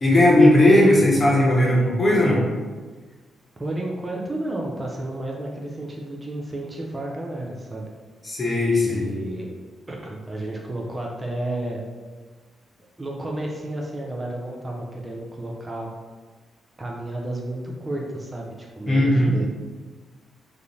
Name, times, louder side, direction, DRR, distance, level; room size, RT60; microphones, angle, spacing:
voice 1, 0.0-2.4 8.2-9.0 18.9-19.3, left 1 dB, 40° left, -4 dB, 0.9 m, -17 dB
voice 2, 3.6-7.8 8.8-9.5 9.9-11.8 13.0-15.9 16.8-19.5, right 1 dB, 25° right, -1 dB, 0.5 m, -31 dB
2.5 x 2.0 x 3.0 m, 1.4 s
supercardioid pair, 50°, 0 cm